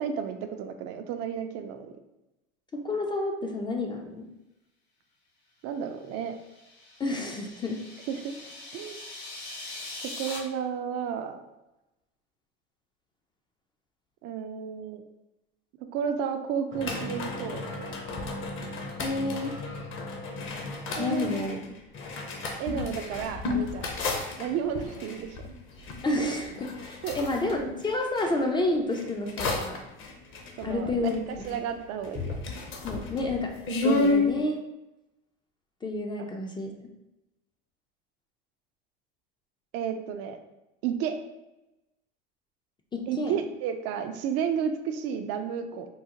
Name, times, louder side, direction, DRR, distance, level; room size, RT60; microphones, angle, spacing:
voice 1, 0.0-1.9 5.6-6.4 8.1-8.3 8.7-9.0 10.2-11.4 14.2-15.0 15.9-17.9 21.0-21.6 22.6-23.9 24.4-25.5 27.0-27.2 30.6-32.4 36.2-36.3 39.7-40.4 40.8-41.2 43.1-45.9, right 7 dB, 55° right, 6 dB, 0.4 m, -32 dB
voice 2, 2.7-4.3 7.0-7.8 19.0-19.6 21.0-21.7 26.0-29.8 30.6-31.2 31.5-31.6 32.8-34.6 35.8-36.7 42.9-43.3, left 2 dB, 15° left, 2 dB, 0.4 m, -30 dB
sound 1, 6.2-10.4, left 2 dB, 85° left, 1.3 m, -42 dB
sound 2, 16.7-28.3 28.9-31.8 32.0-34.3, left 2 dB, 40° left, 0.7 m, -32 dB
3.7 x 2.0 x 2.8 m, 0.95 s
supercardioid pair, 95°, 30 cm